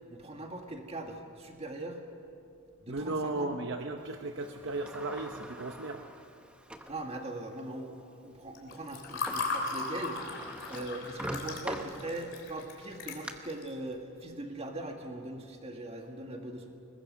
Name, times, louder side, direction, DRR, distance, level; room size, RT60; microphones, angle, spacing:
voice 1, 0.1-2.0 2.8-3.5 6.9-16.7, right 1 dB, 30° right, 3 dB, 1.9 m, -41 dB
voice 2, 2.9-6.1, right 2 dB, 55° right, 5 dB, 0.8 m, -35 dB
Sliding door, 4.4-7.0 7.6-7.7 9.0-9.1 9.3-12.4 12.9-13.3, right 1 dB, 5° right, 0.9 m, -43 dB
Water / Fill (with liquid), 8.6-13.7, left 3 dB, 55° left, 3.4 m, -37 dB
22.0 x 20.0 x 6.4 m, 2.5 s
head